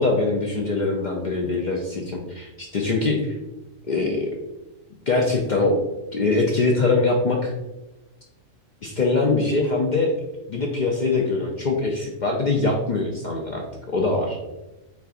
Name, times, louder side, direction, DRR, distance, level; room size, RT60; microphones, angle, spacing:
voice 1, 0.0-3.4 3.9-4.3 5.1-5.8 6.1-7.5 8.8-10.1 10.5-13.6 13.9-14.4, left 3 dB, 65° left, 0 dB, 0.4 m, -22 dB
4.3 x 3.6 x 2.4 m, 1.1 s
omnidirectional pair, 1.3 m